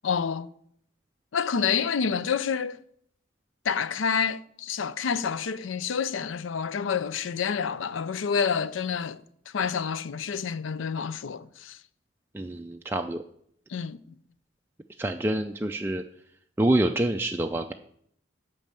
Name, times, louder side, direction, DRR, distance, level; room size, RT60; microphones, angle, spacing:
voice 1, 0.0-0.5 1.3-2.8 3.6-9.2 9.5-11.8 13.7-14.0, left 6 dB, 80° left, 0.5 m, -28 dB
voice 2, 12.3-13.2 15.0-16.0 16.6-17.7, right 1 dB, 10° right, 0.3 m, -26 dB
8.8 x 5.5 x 7.4 m
head